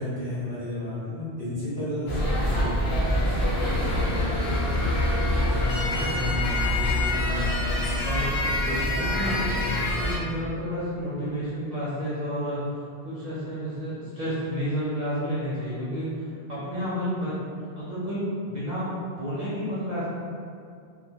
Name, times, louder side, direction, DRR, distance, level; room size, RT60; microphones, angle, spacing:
voice 1, 0.0-4.3 7.8-8.1 8.4-9.7, left 1 dB, 25° left, -12 dB, 0.6 m, -34 dB
sound 1, 2.1-10.2, left 1 dB, 75° left, 0.9 m, -25 dB
voice 2, 5.1-7.5 8.0-8.3 8.7-9.4 10.0-12.6 13.0-17.3 17.8-20.1, equal, 50° right, -10 dB, 0.7 m, -31 dB
2.2 x 2.0 x 2.9 m, 2.4 s
omnidirectional pair, 1.1 m